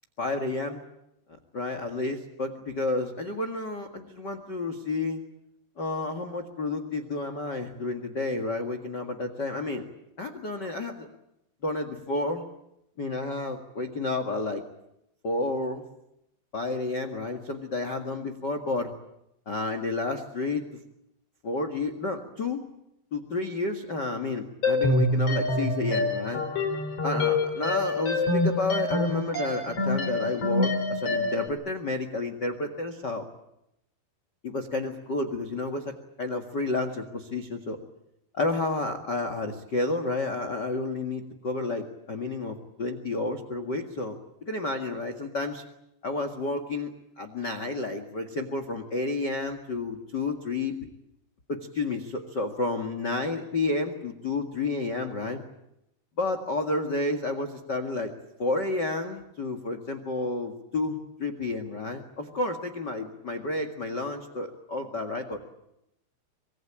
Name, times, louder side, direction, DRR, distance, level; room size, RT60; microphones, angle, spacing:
voice 1, 0.2-0.8 1.5-5.2 5.8-9.8 10.2-11.1 11.6-12.4 13.0-14.6 15.2-15.8 16.5-18.9 19.4-20.7 21.4-22.6 23.1-26.4 27.0-33.2 34.4-37.8 38.3-45.6 46.0-50.7 51.5-55.4 56.2-58.1 58.4-65.4, left 2 dB, 75° left, 8 dB, 0.9 m, -31 dB
sound 1, 24.6-31.5, left 2 dB, 35° left, 4.0 m, -26 dB
25.5 x 21.5 x 8.9 m, 0.85 s
omnidirectional pair, 5.3 m